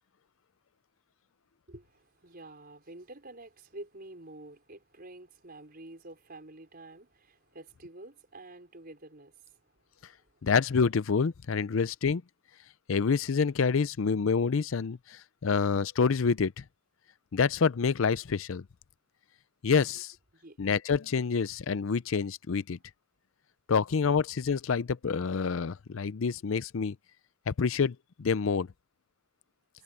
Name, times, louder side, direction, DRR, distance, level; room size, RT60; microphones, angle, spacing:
voice 1, 1.7-10.4 19.9-20.0 20.3-20.6, right 2 dB, 45° right, 5.1 m, -49 dB
voice 2, 10.4-12.2 12.9-15.0 15.4-16.5 17.3-18.6 19.6-20.1 20.6-22.8 23.7-27.0 27.5-28.7, left 5 dB, 65° left, 0.5 m, -27 dB
head